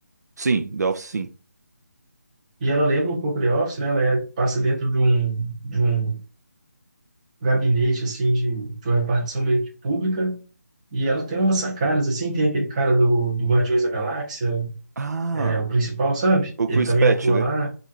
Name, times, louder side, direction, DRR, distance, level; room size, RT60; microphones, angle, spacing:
voice 1, 0.4-1.3 15.0-15.6 16.6-17.5, right 4 dB, 70° right, 0.6 m, -24 dB
voice 2, 2.6-6.2 7.4-10.4 10.9-14.7 15.3-17.7, right 2 dB, 25° right, 0.9 m, -22 dB
3.5 x 2.5 x 4.3 m
figure-of-eight pair, 165°, 9 cm